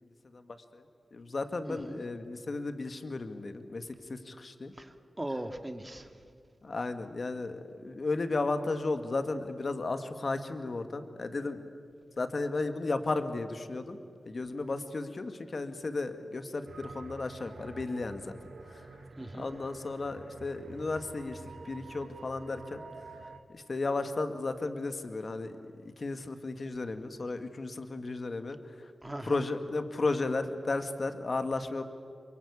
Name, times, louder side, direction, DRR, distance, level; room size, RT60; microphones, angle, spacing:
voice 1, 1.1-4.7 6.6-11.7 12.2-14.0 14.3-18.3 18.7-18.8 19.3-21.4 21.7-22.8 23.5-25.6 26.0-28.6 29.2-31.8, left 3 dB, 55° left, 8 dB, 2.0 m, -34 dB
voice 2, 1.7-2.0 4.8-6.1 19.2-19.5 29.0-29.4, right 1 dB, 20° right, 7 dB, 2.2 m, -39 dB
sound 1, 16.7-23.4, right 3 dB, 75° right, 2.0 m, -48 dB
27.5 x 24.0 x 8.4 m, 2.3 s
cardioid pair, 45°, 0 cm